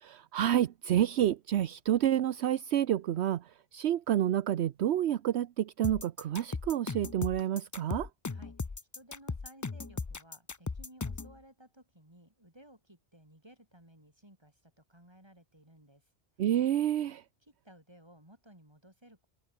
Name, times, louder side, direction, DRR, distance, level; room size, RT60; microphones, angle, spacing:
voice 1, 0.0-8.1 16.4-17.2, right 11 dB, 75° right, 0.9 m, -29 dB
sound 1, 5.8-11.3, left 4 dB, 25° left, 0.4 m, -37 dB
voice 2, 8.3-8.7 8.9-16.1 17.4-19.3, right 1 dB, 25° right, 6.4 m, -58 dB
omnidirectional pair, 1.1 m